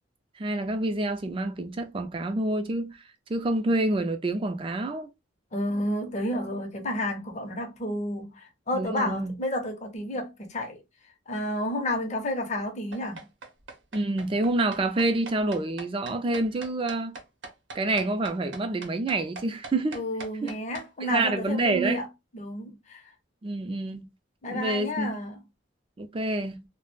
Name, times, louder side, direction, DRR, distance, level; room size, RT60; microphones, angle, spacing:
voice 1, 0.4-3.0 3.3-5.1 8.7-9.3 13.9-17.2 17.7-20.0 20.4-20.5 21.0-22.0 23.4-24.1 24.5-25.1 26.0-26.6, right 2 dB, 30° right, 0.4 m, -27 dB
voice 2, 5.5-10.8 11.3-13.3 19.9-22.1 22.3-23.0 24.4-25.4, left 1 dB, 40° left, 0.6 m, -31 dB
sound 1, 12.9-20.9, right 3 dB, 70° right, 0.7 m, -41 dB
2.2 x 2.1 x 3.0 m
head